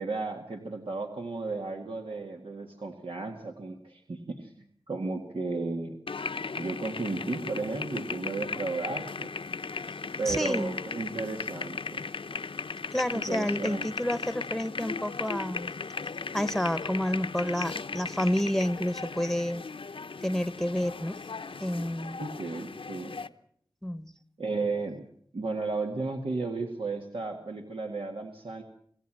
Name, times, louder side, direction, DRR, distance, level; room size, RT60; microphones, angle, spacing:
voice 1, 0.0-6.0 6.5-9.3 10.2-12.0 13.1-13.9 22.2-23.1 24.4-25.1 25.3-28.6, right 3 dB, 85° right, 2 dB, 2.0 m, -34 dB
sound 1, 6.1-23.3, left 4 dB, 90° left, 0.9 m, -37 dB
voice 2, 10.3-10.8 12.9-15.7 16.3-19.6 20.2-21.2 21.6-22.2 23.8-24.1, equal, 5° left, 15 dB, 1.0 m, -29 dB
27.5 x 16.0 x 7.6 m, 0.65 s
wide cardioid pair, 55°, 9 cm